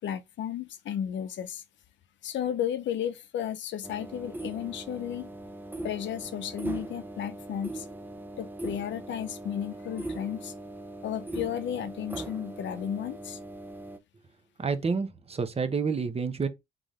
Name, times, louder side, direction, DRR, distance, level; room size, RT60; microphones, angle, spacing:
voice 1, 0.0-1.6 2.2-5.3 5.8-7.9 8.4-10.5 11.0-13.4, left 10 dB, 65° left, 0.7 m, -33 dB
sound 1, 3.8-14.0, right 2 dB, 10° right, 0.6 m, -40 dB
voice 2, 14.6-16.5, right 5 dB, 30° right, 1.0 m, -29 dB
3.8 x 3.8 x 3.1 m
cardioid pair, 90°, 20 cm